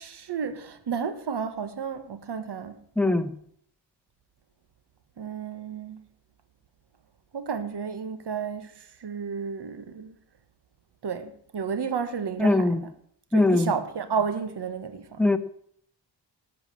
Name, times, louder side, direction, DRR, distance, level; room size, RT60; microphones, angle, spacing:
voice 1, 0.0-2.8 5.2-6.0 7.3-10.1 11.0-12.9 13.3-15.2, right 6 dB, 65° right, 1.3 m, -32 dB
voice 2, 3.0-3.3 12.4-12.8 13.3-13.7 15.2-15.4, left 2 dB, 5° left, 1.0 m, -21 dB
17.5 x 7.4 x 7.6 m
wide cardioid pair, 150°, 43 cm